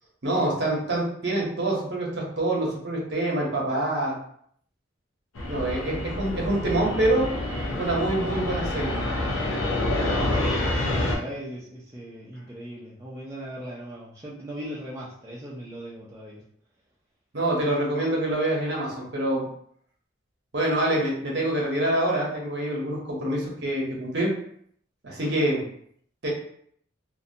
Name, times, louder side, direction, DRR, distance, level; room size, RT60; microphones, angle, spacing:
voice 1, 0.2-4.2 5.5-7.3 7.7-9.0 17.3-19.4 20.5-24.3 25.0-25.6 26.2-26.3, right 1 dB, 55° right, -2 dB, 0.7 m, -26 dB
Fixed-wing aircraft airplane, 5.4-11.2, left 1 dB, 90° left, 0.5 m, -27 dB
voice 2, 10.3-16.4, equal, 15° right, -7 dB, 0.3 m, -38 dB
2.6 x 2.1 x 2.6 m, 0.65 s
head